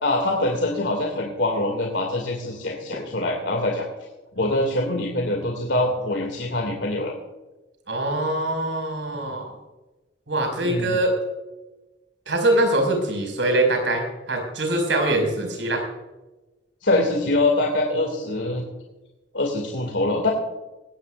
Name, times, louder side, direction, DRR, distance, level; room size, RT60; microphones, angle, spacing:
voice 1, 0.0-3.9 4.3-7.1 10.6-11.0 16.8-18.6 19.3-20.3, left 2 dB, 80° left, 1 dB, 2.4 m, -24 dB
voice 2, 7.9-9.5 10.3-11.1 12.3-15.8, right 1 dB, 85° right, 2 dB, 5.6 m, -23 dB
19.0 x 16.0 x 2.5 m, 1.1 s
head